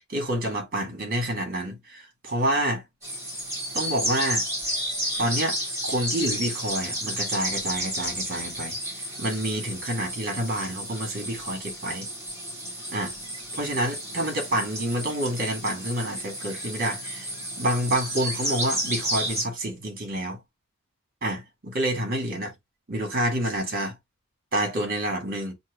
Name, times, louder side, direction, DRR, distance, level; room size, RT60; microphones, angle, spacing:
voice 1, 0.1-2.8 3.7-4.4 5.2-5.6 5.8-8.7 9.2-12.1 12.9-13.1 13.5-17.3 17.6-20.4 21.2-22.5 22.9-23.9 24.5-25.5, right 1 dB, 40° right, 2.0 m, -28 dB
sound 1, 3.0-19.4, equal, 15° right, 3.5 m, -32 dB
8.1 x 3.0 x 2.2 m
head